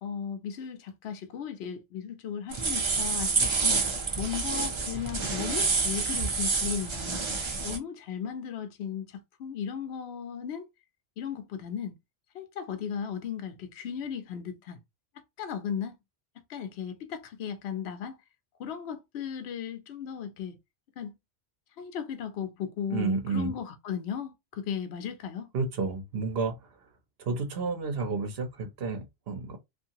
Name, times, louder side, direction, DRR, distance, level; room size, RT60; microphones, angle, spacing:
voice 1, 0.0-3.9 4.2-7.3 7.6-10.7 11.2-11.9 12.3-14.8 15.4-16.0 16.5-18.2 18.6-20.6 21.0-21.2 21.8-25.5, left 8 dB, 70° left, 0.9 m, -36 dB
sound 1, 2.5-7.8, right 4 dB, 35° right, 0.5 m, -28 dB
voice 2, 22.9-23.5 25.5-26.6 27.3-29.6, right 4 dB, 60° right, 0.9 m, -31 dB
2.7 x 2.5 x 2.8 m
omnidirectional pair, 1.2 m